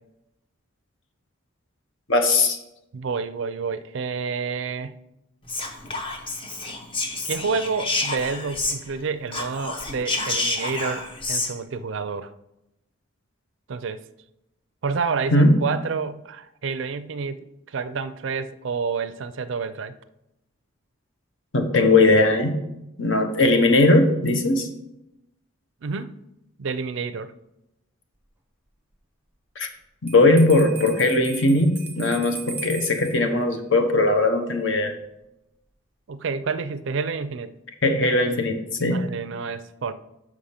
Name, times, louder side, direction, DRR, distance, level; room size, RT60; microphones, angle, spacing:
voice 1, 2.1-2.6 15.3-15.6 21.5-22.6 23.0-24.7 29.6-29.7 30.0-34.9 37.8-39.0, left 2 dB, 60° left, 6 dB, 0.9 m, -19 dB
voice 2, 2.9-5.0 7.2-12.3 13.7-14.0 14.8-19.9 25.8-26.2 26.6-27.3 36.1-37.5 38.9-39.9, right 5 dB, 60° right, 13 dB, 0.4 m, -29 dB
Whispering, 5.5-9.0 9.3-11.5, left 2 dB, 25° left, 0.8 m, -29 dB
Bell, 30.1-33.2, right 4 dB, 10° right, 0.8 m, -38 dB
6.3 x 5.0 x 5.7 m, 0.88 s
head